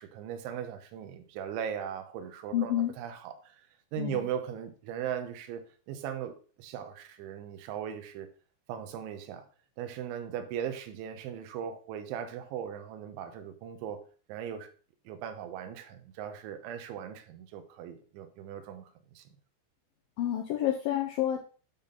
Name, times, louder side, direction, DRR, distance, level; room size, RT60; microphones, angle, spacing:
voice 1, 0.0-3.6 3.9-8.3 8.7-9.5 9.8-14.0 14.3-14.7 15.1-19.2, right 8 dB, 85° right, 3.4 m, -38 dB
voice 2, 2.5-2.9 4.0-4.3 20.2-21.4, left 12 dB, 85° left, 2.0 m, -29 dB
12.5 x 4.2 x 3.9 m
omnidirectional pair, 5.3 m